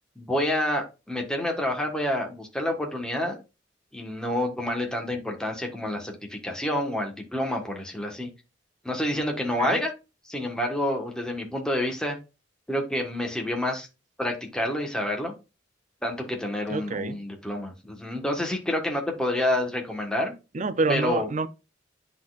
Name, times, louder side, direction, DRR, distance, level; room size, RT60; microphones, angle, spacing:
voice 1, 0.1-3.4 3.9-8.3 8.8-9.9 10.3-12.2 12.7-13.9 14.2-15.3 16.0-20.3 20.9-21.3, left 1 dB, 5° left, 1.5 m, -28 dB
voice 2, 16.7-17.2 20.5-21.5, right 3 dB, 40° right, 0.5 m, -27 dB
10.0 x 4.1 x 2.5 m
head